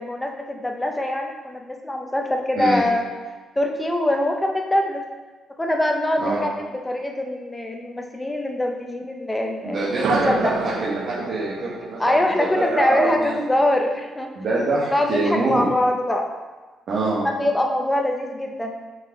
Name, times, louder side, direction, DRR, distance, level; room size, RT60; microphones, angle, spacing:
voice 1, 0.0-3.0 3.6-5.1 5.6-10.5 12.0-14.3 14.9-16.3 17.2-18.7, left 1 dB, 10° left, 2 dB, 0.9 m, -23 dB
voice 2, 9.6-12.0 12.4-13.3 14.3-15.7 16.9-17.3, right 2 dB, 60° right, -7 dB, 1.5 m, -24 dB
sound 1, 9.8-13.8, right 5 dB, 80° right, 0.5 m, -30 dB
6.3 x 4.7 x 3.9 m, 1.3 s
cardioid pair, 90°, 0 cm